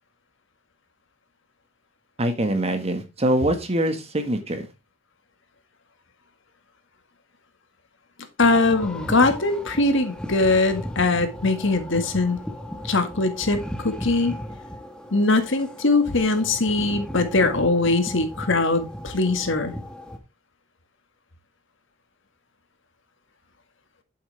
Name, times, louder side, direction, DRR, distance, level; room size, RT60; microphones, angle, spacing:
voice 1, 2.2-4.7, right 1 dB, 30° right, 7 dB, 1.6 m, -24 dB
voice 2, 8.4-12.4 12.8-14.4 15.1-19.8, left 3 dB, 70° left, 8 dB, 1.8 m, -21 dB
sound 1, 8.4-20.2, equal, 5° left, 1.4 m, -36 dB
9.2 x 7.8 x 3.4 m, 0.25 s
head